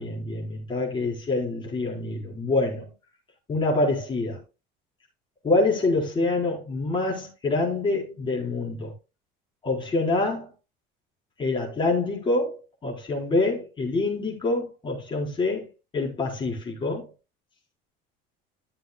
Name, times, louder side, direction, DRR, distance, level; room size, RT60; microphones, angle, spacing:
voice 1, 0.0-2.8 3.5-4.4 5.4-8.9 9.6-10.5 11.4-15.7 15.9-17.1, left 2 dB, 25° left, 4.3 m, -26 dB
14.0 x 7.7 x 2.2 m
cardioid pair, 155°, 20 cm